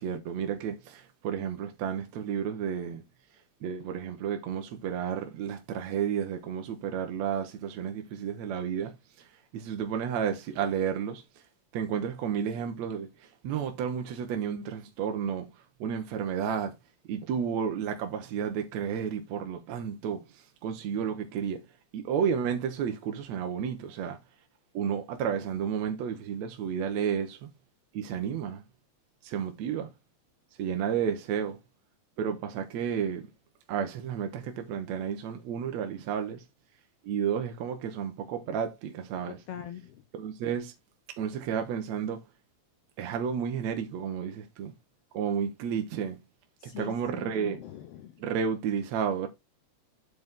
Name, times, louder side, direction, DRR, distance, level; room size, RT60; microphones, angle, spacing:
voice 1, 0.0-3.0 3.6-9.3 9.5-11.2 11.7-15.5 15.8-16.7 17.1-21.6 21.9-24.2 24.7-27.5 27.9-28.6 29.2-29.9 30.6-31.6 32.2-33.3 33.7-36.4 37.0-39.4 40.1-40.7 41.2-42.2 43.0-44.7 45.1-46.2 46.6-47.6 48.2-49.3, right 7 dB, 70° right, 2.3 m, -32 dB
voice 2, 39.3-40.0 46.6-48.2, left 10 dB, 70° left, 1.5 m, -42 dB
8.2 x 5.2 x 3.7 m
omnidirectional pair, 3.3 m